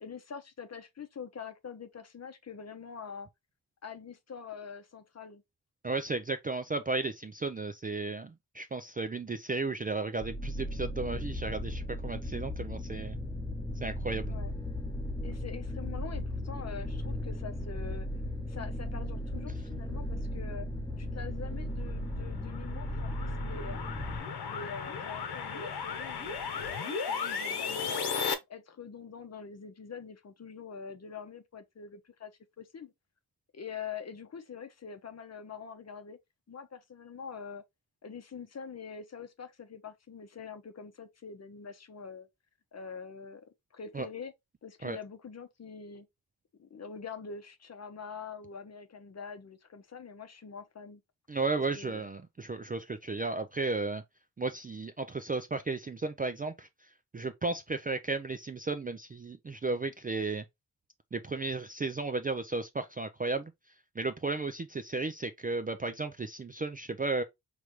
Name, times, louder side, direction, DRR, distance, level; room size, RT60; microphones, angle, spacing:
voice 1, 0.0-3.3 3.8-5.4 14.2-14.5 15.2-18.1 18.5-20.7 21.0-23.9 24.4-28.2 28.5-32.3 32.6-32.9 33.5-36.2 36.5-37.6 38.0-42.3 42.7-43.4 43.7-44.3 44.6-46.1 46.6-51.0 51.7-52.0, left 6 dB, 40° left, 0.8 m, -44 dB
voice 2, 5.8-13.2 13.8-14.4 43.9-44.1 44.8-45.0 51.3-54.0 54.4-60.4 61.1-63.5 64.0-67.2, right 3 dB, 25° right, 0.3 m, -34 dB
sound 1, 10.2-24.2, left 1 dB, 10° left, 1.0 m, -36 dB
sound 2, 21.8-28.3, left 6 dB, 80° left, 1.1 m, -36 dB
5.1 x 3.2 x 3.0 m
wide cardioid pair, 150°, 39 cm